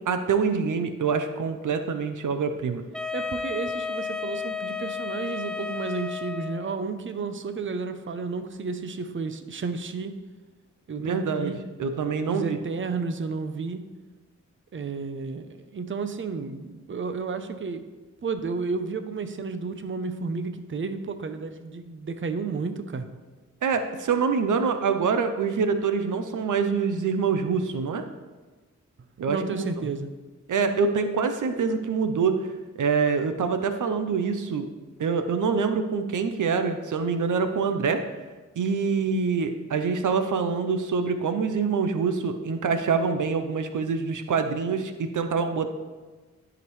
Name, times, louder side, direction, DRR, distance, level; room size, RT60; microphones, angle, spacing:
voice 1, 0.1-2.8 11.0-12.6 23.6-28.0 29.2-29.7 30.5-32.4 32.8-34.7 35.0-38.0 38.6-45.7, right 5 dB, 80° right, 8 dB, 0.6 m, -25 dB
Wind instrument woodwind instrument, 2.9-6.8, left 5 dB, ahead, 0.4 m, -32 dB
voice 2, 3.1-10.2 10.9-11.6 12.3-13.8 14.7-17.9 18.2-23.1 29.3-30.1, right 4 dB, 40° right, 9 dB, 0.6 m, -32 dB
12.5 x 5.0 x 3.1 m, 1.3 s
cardioid pair, 70°, 31 cm